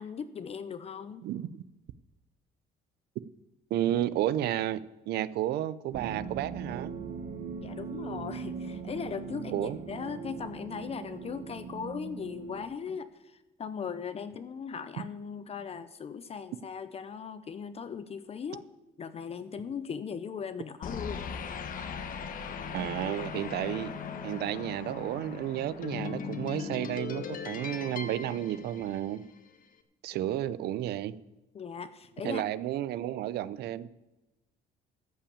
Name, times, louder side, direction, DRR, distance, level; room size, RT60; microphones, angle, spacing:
voice 1, 0.0-1.3 7.6-18.7 19.0-21.3 31.5-32.4, left 6 dB, 35° left, 12 dB, 0.7 m, -38 dB
voice 2, 1.2-1.6 3.7-4.8 5.1-6.9 9.5-9.8 22.7-23.9 24.2-29.2 30.0-31.2 32.2-33.9, right 12 dB, 75° right, 18 dB, 0.6 m, -32 dB
sound 1, 5.9-12.6, right 6 dB, 55° right, 1.6 m, -40 dB
sound 2, 20.8-29.4, left 6 dB, 55° left, 1.2 m, -39 dB
14.0 x 5.7 x 8.6 m, 1.0 s
cardioid pair, 110°, 17 cm